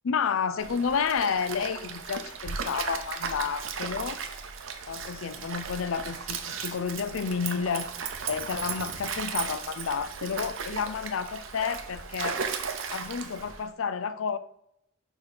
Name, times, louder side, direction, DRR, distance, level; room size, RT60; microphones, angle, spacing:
voice 1, 0.0-4.2 4.9-7.9 8.3-12.4 12.9-14.4, left 6 dB, 85° left, 0.5 m, -30 dB
Stream, 0.6-13.7, right 6 dB, 80° right, 0.7 m, -36 dB
5.6 x 4.5 x 4.9 m
head